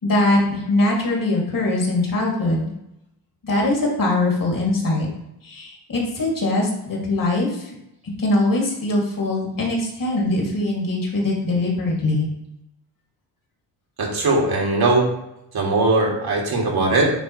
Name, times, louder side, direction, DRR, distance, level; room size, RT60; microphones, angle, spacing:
voice 1, 0.0-2.7 3.4-5.1 5.4-7.7 8.2-12.3, left 2 dB, 45° left, -2 dB, 2.4 m, -22 dB
voice 2, 14.0-15.1 15.5-17.1, right 2 dB, 55° right, -1 dB, 1.9 m, -19 dB
9.4 x 3.4 x 3.1 m, 0.85 s
cardioid pair, 75°, 45 cm